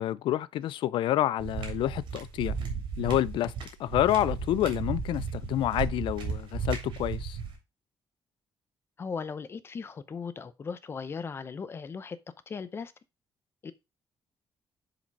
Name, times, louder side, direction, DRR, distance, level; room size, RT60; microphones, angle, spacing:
voice 1, 0.0-2.6 3.0-3.5 3.8-7.4, left 13 dB, 80° left, 0.4 m, -28 dB
sound 1, 1.4-7.5, right 5 dB, 85° right, 3.1 m, -34 dB
voice 2, 9.0-12.2 12.5-12.9 13.6-13.7, left 5 dB, 30° left, 0.6 m, -37 dB
7.2 x 5.0 x 4.6 m
cardioid pair, 170°, 8 cm